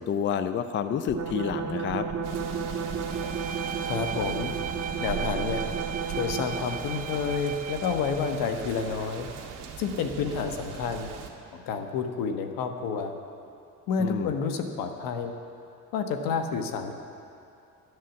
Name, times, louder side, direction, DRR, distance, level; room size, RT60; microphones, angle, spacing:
voice 1, 0.0-2.1 14.0-14.3, left 8 dB, 35° left, 10 dB, 0.5 m, -29 dB
sound 1, 1.1-6.8, right 5 dB, 55° right, 1.6 m, -33 dB
sound 2, 2.2-11.3, right 7 dB, 75° right, 1.7 m, -40 dB
Bowed string instrument, 3.1-8.5, right 8 dB, 25° right, 0.4 m, -37 dB
voice 2, 3.8-4.5 5.0-5.6 6.2-9.3 9.8-11.1 11.5-13.1 13.9-15.3 15.9-16.9, left 5 dB, 80° left, 6 dB, 1.3 m, -29 dB
11.0 x 10.5 x 7.2 m, 2.7 s
cardioid pair, 120°, 33 cm